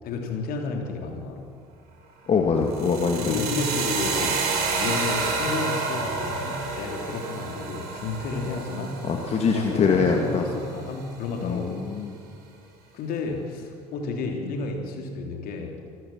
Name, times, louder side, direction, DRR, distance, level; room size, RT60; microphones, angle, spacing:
voice 1, 0.0-1.5 3.1-4.5 4.8-9.1 9.4-11.9 12.9-15.8, left 3 dB, 55° left, 3 dB, 3.5 m, -31 dB
voice 2, 2.3-3.4 9.1-10.4 11.4-12.1, left 5 dB, 35° left, 2 dB, 2.3 m, -23 dB
sound 1, 2.7-10.7, right 4 dB, 60° right, 6.0 m, -29 dB
27.0 x 14.5 x 7.5 m, 2.2 s
figure-of-eight pair, 60°, 18 cm